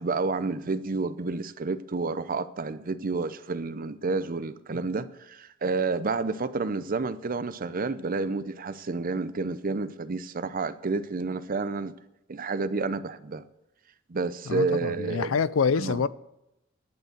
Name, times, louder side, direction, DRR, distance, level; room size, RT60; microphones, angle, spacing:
voice 1, 0.0-12.0 12.3-13.5 14.1-15.4 15.8-16.0, right 3 dB, 45° right, 0.6 m, -30 dB
voice 2, 14.5-16.1, left 5 dB, 90° left, 0.5 m, -26 dB
10.5 x 9.0 x 7.8 m
head